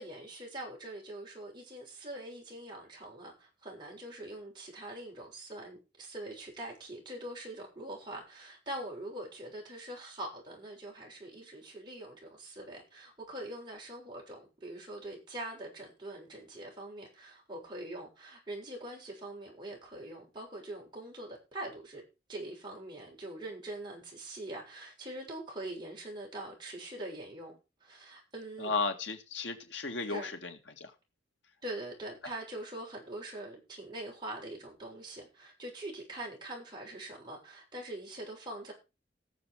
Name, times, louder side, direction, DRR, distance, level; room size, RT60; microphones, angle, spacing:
voice 1, 0.0-22.0 22.3-28.7 30.1-30.3 31.6-38.7, right 1 dB, 25° right, 7.0 m, -43 dB
voice 2, 28.6-30.9, left 4 dB, 80° left, 2.2 m, -35 dB
18.0 x 7.3 x 4.8 m
head